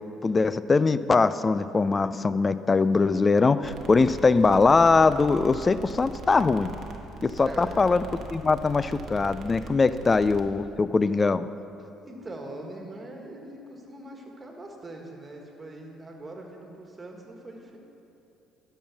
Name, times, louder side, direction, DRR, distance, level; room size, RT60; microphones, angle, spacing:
voice 1, 0.2-6.7 7.2-8.0 8.3-11.5, left 4 dB, 30° left, 14 dB, 0.4 m, -22 dB
sound 1, 3.6-10.4, right 4 dB, 55° right, 1.0 m, -41 dB
voice 2, 12.1-17.8, right 1 dB, 25° right, 1 dB, 1.7 m, -42 dB
12.5 x 5.6 x 6.0 m, 2.9 s
supercardioid pair, 70°, 0 cm